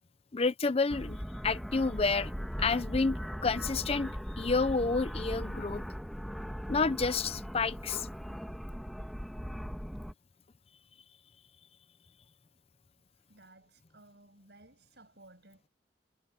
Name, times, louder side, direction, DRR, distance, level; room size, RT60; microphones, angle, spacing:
voice 1, 0.3-1.2 1.4-2.3 2.6-5.8 6.7-8.1, left 4 dB, 35° left, 0.6 m, -29 dB
sound 1, 0.9-10.1, equal, ahead, 1.6 m, -39 dB
voice 2, 13.3-15.7, right 2 dB, 65° right, 7.7 m, -58 dB
head